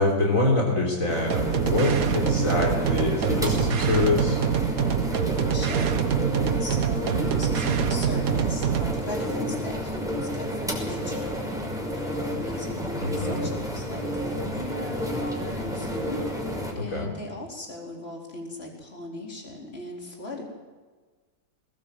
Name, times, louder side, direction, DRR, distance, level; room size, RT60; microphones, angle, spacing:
voice 1, 0.0-4.4 13.0-13.5 16.8-17.1, left 2 dB, 60° left, -1 dB, 4.1 m, -25 dB
sound 1, 1.1-16.7, equal, ahead, 5.4 m, -31 dB
sound 2, 1.3-9.0, right 8 dB, 70° right, 1.4 m, -25 dB
voice 2, 5.5-6.1 6.4-11.4 11.9-16.2 16.8-20.4, left 2 dB, 40° left, -1 dB, 4.4 m, -38 dB
21.5 x 19.5 x 7.7 m, 1.4 s
omnidirectional pair, 1.6 m